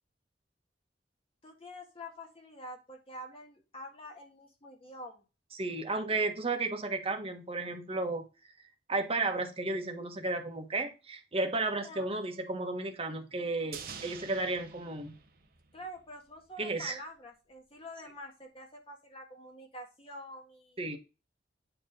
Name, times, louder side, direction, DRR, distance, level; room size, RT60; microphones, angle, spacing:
voice 1, 1.4-5.2 11.8-12.0 15.7-21.0, left 1 dB, 30° left, 2 dB, 1.7 m, -47 dB
voice 2, 5.5-8.2 8.9-15.1 16.6-17.0 20.8-21.0, right 3 dB, 35° right, 4 dB, 1.5 m, -33 dB
sound 1, 13.7-16.1 16.4-16.5, right 6 dB, 55° right, 1.2 m, -47 dB
9.2 x 3.5 x 5.4 m, 0.30 s
head